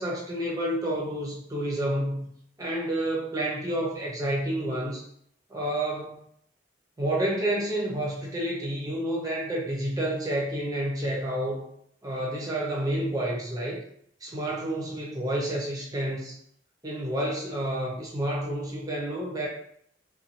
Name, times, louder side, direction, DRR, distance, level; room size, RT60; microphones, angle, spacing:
voice 1, 0.0-2.3 2.6-5.0 5.5-6.2 7.0-11.6 12.0-13.8 14.2-16.3 16.8-19.5, right 1 dB, 20° right, -3 dB, 0.7 m, -29 dB
2.6 x 2.3 x 2.8 m, 0.67 s
head